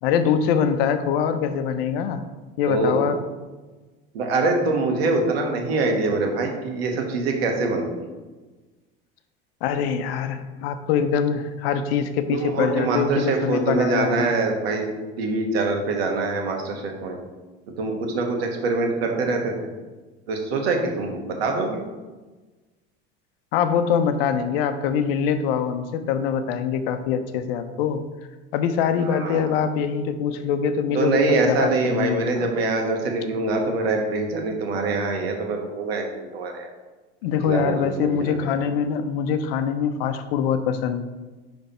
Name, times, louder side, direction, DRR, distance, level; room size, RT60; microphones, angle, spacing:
voice 1, 0.0-2.2 2.6-3.2 9.6-14.3 23.5-28.0 28.5-31.2 31.5-32.5 37.2-41.0, left 7 dB, 75° left, 9 dB, 0.7 m, -23 dB
voice 2, 2.7-3.1 4.1-8.0 12.3-14.9 15.2-17.2 17.8-19.5 20.3-21.8 29.1-29.4 30.9-36.7 37.4-38.5, right 3 dB, 80° right, 3 dB, 1.4 m, -24 dB
10.0 x 3.4 x 4.3 m, 1.3 s
hypercardioid pair, 80°, 30 cm